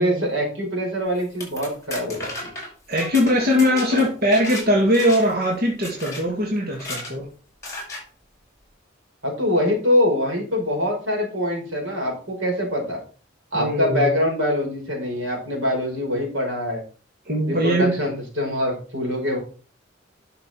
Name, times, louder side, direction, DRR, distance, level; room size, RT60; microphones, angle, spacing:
voice 1, 0.0-2.5 3.9-4.1 9.2-13.0 13.5-16.8 17.5-19.4, left 1 dB, 80° right, 0 dB, 5.3 m, -24 dB
sound 1, 1.2-4.7 4.9-5.4 5.8-6.2 6.7-7.1 7.6-8.0, left 2 dB, 15° left, 6.7 m, -34 dB
voice 2, 2.9-7.3 13.5-14.1 17.3-18.0, equal, 50° right, -1 dB, 2.2 m, -21 dB
11.0 x 6.8 x 4.5 m, 0.38 s
head